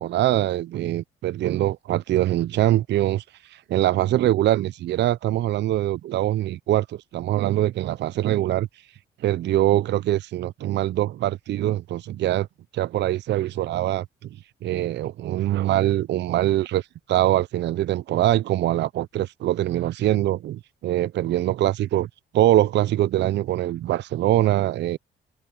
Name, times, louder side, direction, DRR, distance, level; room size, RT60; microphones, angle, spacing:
voice 1, 0.0-3.2 3.5-8.7 9.2-12.5 12.7-14.3 14.6-16.8 17.1-22.1 22.3-25.0, right 13 dB, 60° right, 0.4 m, -23 dB
cardioid pair, 90°, 20 cm